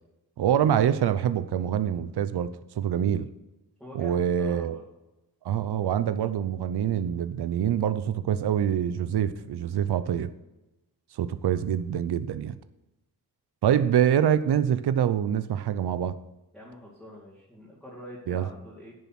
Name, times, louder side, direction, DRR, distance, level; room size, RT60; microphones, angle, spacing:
voice 1, 0.4-3.3 3.9-4.8 5.4-10.3 11.2-12.5 13.6-16.2 18.3-18.5, right 9 dB, 85° right, 13 dB, 0.6 m, -25 dB
voice 2, 3.8-4.8 16.5-19.0, equal, ahead, -9 dB, 2.3 m, -45 dB
10.5 x 7.1 x 5.9 m, 1.0 s
wide cardioid pair, 150°, 38 cm